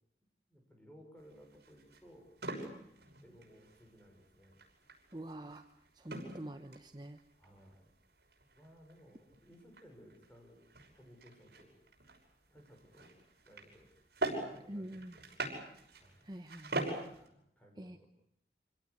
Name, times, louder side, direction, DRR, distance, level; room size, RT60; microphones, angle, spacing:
voice 1, 0.5-2.3 3.2-4.6 7.4-7.9 8.5-10.6 10.9-11.8 12.5-13.9 14.4-14.9 15.2-15.4 15.9-16.3 17.2-18.1, equal, 10° left, 1 dB, 6.2 m, -59 dB
sound 1, 1.2-17.3, right 2 dB, 65° right, 6.2 m, -45 dB
voice 2, 5.1-5.6 5.9-7.2 14.7-15.2 16.2-16.8 17.8-18.0, right 1 dB, 25° right, 7 dB, 0.9 m, -46 dB
26.0 x 17.5 x 9.8 m, 0.72 s
head